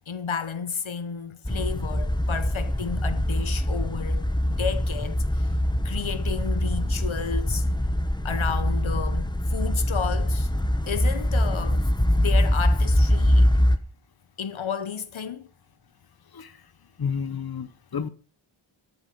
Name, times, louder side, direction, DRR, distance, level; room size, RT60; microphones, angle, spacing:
voice 1, 0.1-5.5 5.8-7.6 8.2-10.5 10.9-11.9 12.2-13.5 14.4-15.5, left 7 dB, 75° left, 1.0 m, -32 dB
sound 1, 1.4-13.8, left 1 dB, 10° left, 1.3 m, -23 dB
voice 2, 17.0-18.1, left 6 dB, 50° left, 1.0 m, -31 dB
13.0 x 6.9 x 6.8 m
wide cardioid pair, 70°, 48 cm